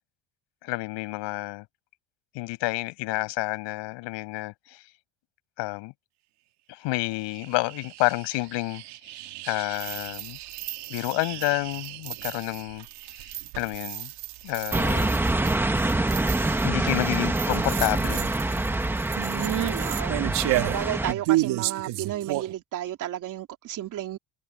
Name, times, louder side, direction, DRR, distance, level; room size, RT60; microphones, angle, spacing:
voice 1, 0.6-1.6 2.3-4.8 5.6-5.9 6.7-8.8 9.5-10.4 10.9-12.9 13.2-14.1 14.4-15.1 16.6-18.3, left 22 dB, 85° left, 5.6 m, -29 dB
sound 1, 7.1-22.5, right 18 dB, 70° right, 2.3 m, -33 dB
sound 2, 14.7-21.1, right 2 dB, 5° right, 0.8 m, -25 dB
voice 2, 19.2-24.2, right 12 dB, 45° right, 3.2 m, -32 dB
cardioid pair, 175°, 42 cm